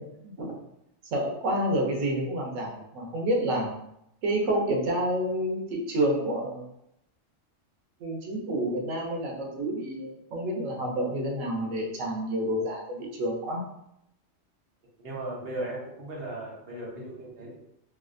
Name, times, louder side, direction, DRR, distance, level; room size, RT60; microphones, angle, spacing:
voice 1, 0.2-0.5 1.1-3.7 4.2-6.7 8.0-13.6, right 1 dB, 85° right, 0 dB, 1.1 m, -29 dB
voice 2, 15.0-17.6, right 1 dB, 55° right, -3 dB, 1.0 m, -37 dB
3.2 x 2.4 x 2.5 m, 0.80 s
omnidirectional pair, 1.3 m